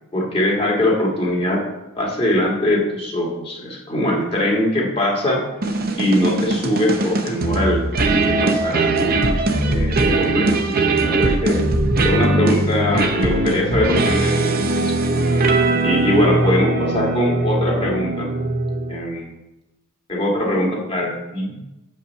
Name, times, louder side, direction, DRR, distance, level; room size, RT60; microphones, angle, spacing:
voice 1, 0.1-1.6 2.0-5.4 6.0-9.2 9.7-11.7 12.0-15.1 15.8-18.3 18.9-19.3 20.1-21.6, left 1 dB, 25° left, -2 dB, 2.0 m, -22 dB
sound 1, 5.6-19.1, right 2 dB, 45° right, 0.8 m, -20 dB
6.6 x 5.5 x 6.7 m, 0.99 s
head